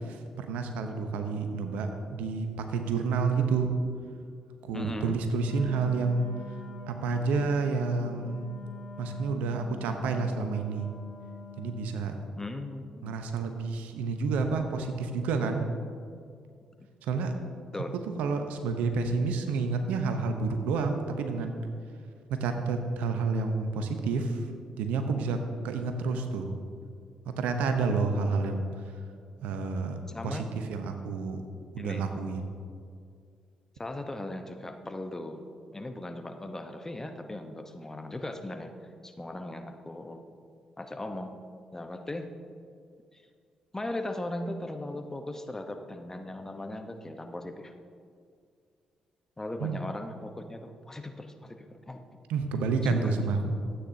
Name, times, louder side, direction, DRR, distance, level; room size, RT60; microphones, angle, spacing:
voice 1, 0.1-3.7 4.6-6.3 6.9-8.4 9.0-10.9 11.6-12.1 13.0-15.7 17.0-17.3 18.2-21.6 22.4-24.4 24.8-25.4 25.6-26.5 27.4-28.6 29.4-30.0 30.2-30.4 30.7-31.4 31.7-32.5 49.6-49.8 52.3-53.4, right 4 dB, 75° right, 6 dB, 0.8 m, -29 dB
voice 2, 4.7-5.2 12.4-13.2 17.7-17.9 30.1-30.5 31.8-32.0 33.8-35.4 35.7-38.7 39.0-40.2 40.8-41.3 41.7-42.3 43.1-43.2 43.7-47.7 49.4-52.0 52.8-53.2, left 1 dB, 20° left, 6 dB, 0.9 m, -38 dB
Wind instrument woodwind instrument, 5.4-12.1, left 5 dB, 75° left, 0.9 m, -45 dB
13.0 x 8.7 x 2.8 m, 2.2 s
hypercardioid pair, 45°, 2 cm